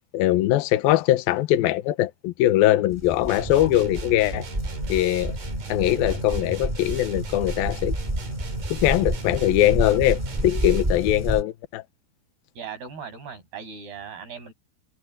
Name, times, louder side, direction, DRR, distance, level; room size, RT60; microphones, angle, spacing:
voice 1, 0.1-4.5 4.9-5.4 5.7-7.9 8.7-11.8, left 14 dB, 70° left, 2.7 m, -21 dB
sound 1, 2.9-11.4, right 1 dB, 10° right, 3.5 m, -30 dB
sound 2, 3.3-11.0, right 2 dB, 50° right, 5.6 m, -36 dB
voice 2, 12.6-14.5, right 6 dB, 70° right, 9.1 m, -38 dB
omnidirectional pair, 4.7 m